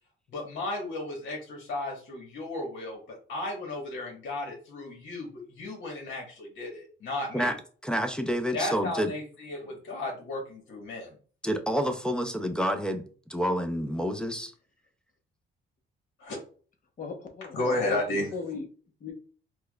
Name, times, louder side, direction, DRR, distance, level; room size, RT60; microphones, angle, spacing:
voice 1, 0.3-7.5 8.5-11.2 16.2-16.4 17.5-18.3, left 2 dB, 65° left, 0 dB, 1.2 m, -34 dB
voice 2, 7.8-9.1 11.4-13.0 13.3-14.5, equal, 5° left, 4 dB, 0.5 m, -28 dB
voice 3, 17.0-18.7 19.0-19.1, left 4 dB, 45° left, 4 dB, 0.8 m, -37 dB
4.5 x 2.2 x 2.3 m, 0.40 s
cardioid pair, 90°, 20 cm